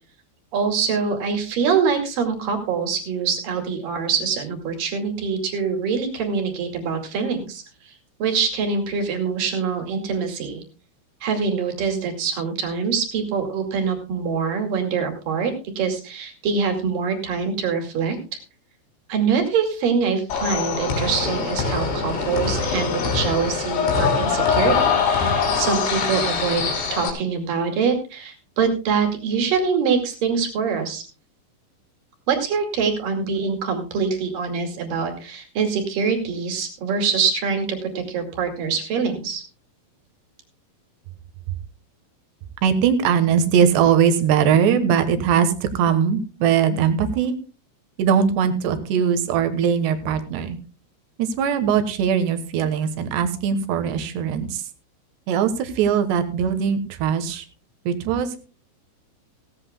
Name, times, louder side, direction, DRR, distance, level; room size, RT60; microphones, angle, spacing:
voice 1, 0.5-7.9 8.2-10.6 11.2-18.2 19.1-31.0 32.3-39.4, right 5 dB, 50° right, 3 dB, 3.5 m, -24 dB
sound 1, 20.3-27.1, left 5 dB, 70° left, 5.3 m, -23 dB
voice 2, 42.6-47.4 48.0-50.6 51.2-54.6 55.3-57.4 57.9-58.4, right 7 dB, 70° right, 10 dB, 3.1 m, -20 dB
16.5 x 16.0 x 2.2 m, 0.35 s
omnidirectional pair, 5.4 m